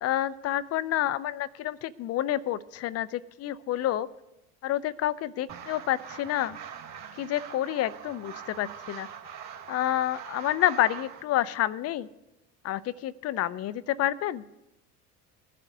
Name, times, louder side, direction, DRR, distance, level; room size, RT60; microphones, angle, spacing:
voice 1, 0.0-4.1 4.6-6.6 7.2-9.1 9.7-12.1 12.6-14.4, left 13 dB, 35° left, 17 dB, 0.5 m, -29 dB
sound 1, 5.5-11.2, right 8 dB, 35° right, 2.2 m, -43 dB
20.5 x 11.0 x 2.7 m, 0.94 s
figure-of-eight pair, 70°, 47 cm